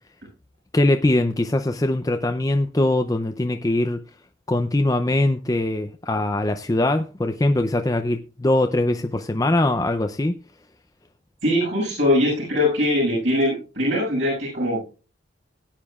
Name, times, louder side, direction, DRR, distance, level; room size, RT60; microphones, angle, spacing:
voice 1, 0.7-4.0 4.5-10.4, left 1 dB, 20° left, 0.5 m, -22 dB
voice 2, 11.4-14.8, left 1 dB, 70° right, 6.9 m, -21 dB
19.0 x 9.0 x 2.4 m
head